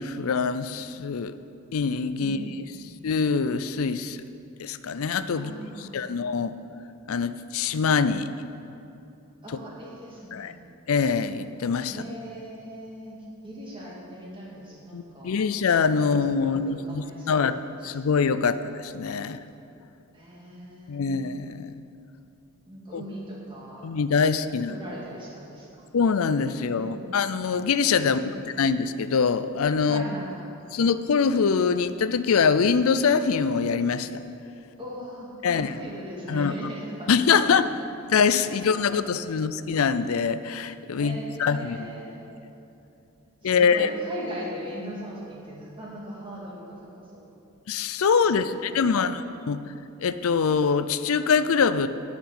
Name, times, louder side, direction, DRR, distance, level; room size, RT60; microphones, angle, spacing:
voice 1, 0.0-1.3 1.7-2.4 3.0-4.2 4.6-5.6 5.9-6.5 7.1-8.3 10.3-10.5 10.9-12.0 14.9-17.5 17.8-19.4 20.9-21.7 22.9-23.0 23.8-24.8 25.9-30.0 30.7-34.2 35.4-35.8 36.3-36.5 37.1-37.7 38.1-41.9 43.4-43.9 47.7-49.2 49.5-49.6 50.0-51.9, left 5 dB, 80° left, 12 dB, 0.5 m, -24 dB
voice 2, 2.2-2.9 5.3-6.0 9.4-10.5 11.8-15.4 16.0-17.4 17.8-18.0 20.1-21.5 22.7-23.9 24.4-25.9 26.8-27.1 28.0-28.5 29.8-30.5 34.8-37.6 38.4-39.1 40.9-42.3 43.4-47.3 48.3-49.1, equal, 25° right, -4 dB, 2.2 m, -40 dB
10.5 x 5.8 x 8.4 m, 2.7 s
head